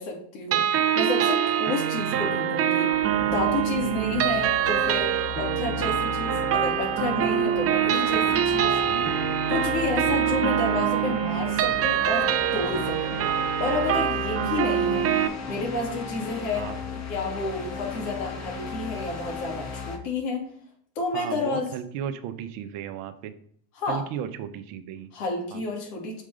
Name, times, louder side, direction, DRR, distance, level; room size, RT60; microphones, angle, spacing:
voice 1, 0.0-2.9 3.2-8.8 9.5-12.3 12.5-13.2 13.6-15.1 15.5-16.6 17.0-20.5 21.0-21.7 23.8-24.0 25.1-26.2, left 3 dB, 85° left, 0 dB, 2.4 m, -30 dB
sound 1, 0.5-15.3, right 10 dB, 30° right, 0.6 m, -24 dB
sound 2, 2.9-20.0, left 5 dB, 35° left, 1.5 m, -36 dB
voice 2, 10.0-10.4 16.5-16.8 19.0-19.1 21.1-23.3 23.9-25.1 25.5-25.6, right 9 dB, 70° right, 9 dB, 0.9 m, -35 dB
6.5 x 3.6 x 5.0 m, 0.63 s
supercardioid pair, 105°, 46 cm